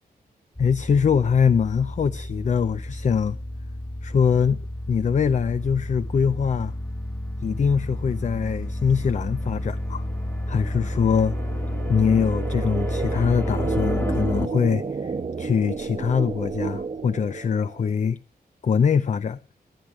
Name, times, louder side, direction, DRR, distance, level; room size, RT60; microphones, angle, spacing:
voice 1, 0.6-3.4 4.0-6.7 7.4-10.0 10.5-11.4 11.9-18.2 18.6-19.4, left 6 dB, 45° left, 0.6 m, -23 dB
sound 1, 0.6-14.5, left 1 dB, 15° left, 1.6 m, -30 dB
sound 2, 9.0-17.9, right 5 dB, 40° right, 1.0 m, -32 dB
19.5 x 10.0 x 4.8 m
wide cardioid pair, 105°, 16 cm